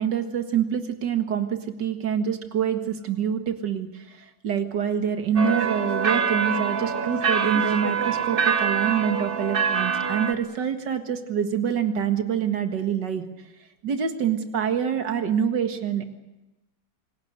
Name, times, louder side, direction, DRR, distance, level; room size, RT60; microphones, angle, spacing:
voice 1, 0.0-13.2 13.8-16.0, right 8 dB, 80° right, 7 dB, 2.4 m, -26 dB
sound 1, 5.4-10.3, right 6 dB, 35° right, 1.3 m, -25 dB
27.5 x 18.5 x 8.1 m, 1.0 s
omnidirectional pair, 1.9 m